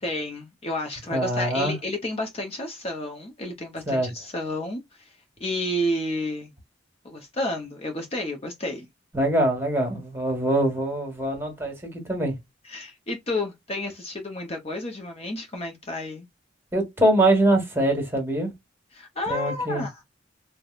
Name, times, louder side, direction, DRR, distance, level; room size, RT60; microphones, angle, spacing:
voice 1, 0.0-6.5 7.0-8.9 12.6-16.3 18.9-20.0, left 1 dB, 30° left, 0.7 m, -31 dB
voice 2, 1.1-1.8 3.9-4.1 9.1-12.3 16.7-18.5 19.3-19.9, right 1 dB, 10° right, 1.4 m, -23 dB
4.6 x 2.1 x 2.4 m
head